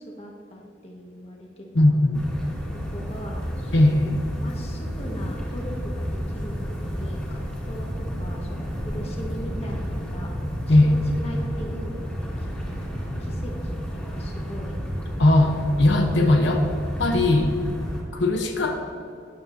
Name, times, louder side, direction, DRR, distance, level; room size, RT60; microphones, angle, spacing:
voice 1, 0.0-2.0 2.7-10.3 10.7-12.5 12.9-14.8 16.1-16.4 18.8-18.9, equal, 35° left, 0 dB, 1.5 m, -40 dB
voice 2, 1.7-2.2 3.7-4.2 10.7-10.9 15.2-16.6 17.0-17.5 18.1-18.9, left 1 dB, 90° left, 4 dB, 0.8 m, -19 dB
sound 1, 2.1-18.0, equal, 10° left, 2.1 m, -31 dB
12.0 x 9.3 x 2.7 m, 2.5 s
head